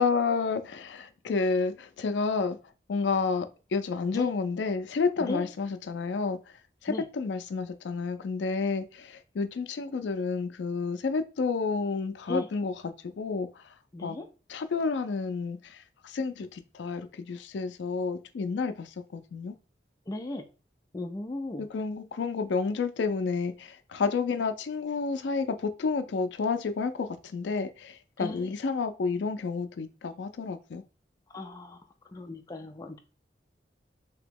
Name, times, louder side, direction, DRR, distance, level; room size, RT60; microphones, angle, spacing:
voice 1, 0.0-2.6 2.9-6.4 6.8-13.5 14.0-14.2 14.5-19.5 21.6-30.8, left 4 dB, 90° left, 0.4 m, -30 dB
voice 2, 13.9-14.3 20.1-20.4 20.9-21.7 28.2-28.5 31.3-31.8 32.1-33.0, left 2 dB, 20° left, 0.4 m, -36 dB
3.0 x 2.8 x 3.4 m
head